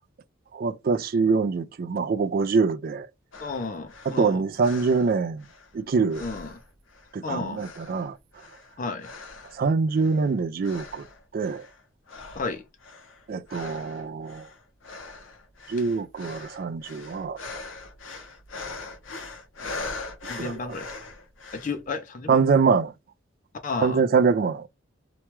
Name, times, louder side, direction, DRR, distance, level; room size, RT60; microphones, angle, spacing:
voice 1, 0.5-3.1 4.1-5.4 5.7-6.2 7.1-8.1 9.6-11.0 11.3-11.6 13.3-14.5 15.7-17.4 20.4-20.7 22.3-22.9 23.8-24.7, right 5 dB, 45° right, 0.3 m, -24 dB
sound 1, 3.3-5.8 6.1-7.2 7.6-9.6 9.9-10.3 10.6-11.8 12.1-21.8, left 3 dB, 70° left, 0.7 m, -41 dB
voice 2, 3.4-4.4 6.2-6.5 7.2-7.6 8.8-9.1 12.3-12.6 19.6-19.7 20.3-20.9 21.5-22.4 23.6-24.0, left 4 dB, 40° left, 0.4 m, -32 dB
2.9 x 2.2 x 3.0 m
head